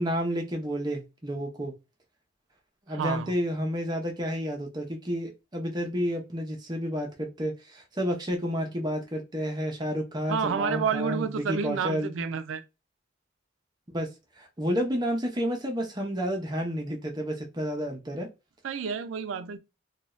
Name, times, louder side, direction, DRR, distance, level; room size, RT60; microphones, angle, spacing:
voice 1, 0.0-1.7 2.9-12.1 13.9-14.1 14.4-18.3, equal, 20° right, 0.7 m, -30 dB
voice 2, 2.9-3.4 10.3-12.6 18.6-19.6, right 6 dB, 75° right, 0.4 m, -30 dB
2.6 x 2.2 x 3.0 m
head